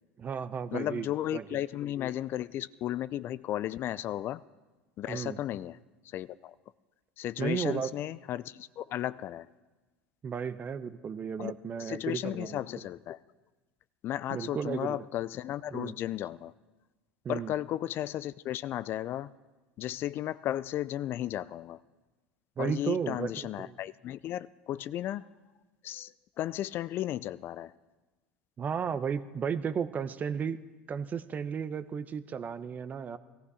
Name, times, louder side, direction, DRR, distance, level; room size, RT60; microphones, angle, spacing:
voice 1, 0.2-1.6 5.1-5.4 7.4-7.9 10.2-12.6 14.3-15.0 15.7-15.9 17.2-17.5 22.6-23.8 28.6-30.6 30.9-33.2, right 7 dB, 35° right, 14 dB, 0.8 m, -34 dB
voice 2, 0.7-4.4 5.0-5.8 6.1-6.5 7.2-9.5 11.4-11.5 11.8-13.2 14.0-16.5 17.3-19.3 19.8-21.8 22.6-25.2 25.8-26.1 26.4-27.7, left 12 dB, 50° left, 18 dB, 0.4 m, -34 dB
17.5 x 15.0 x 4.9 m, 1.2 s
hypercardioid pair, 80°, 5 cm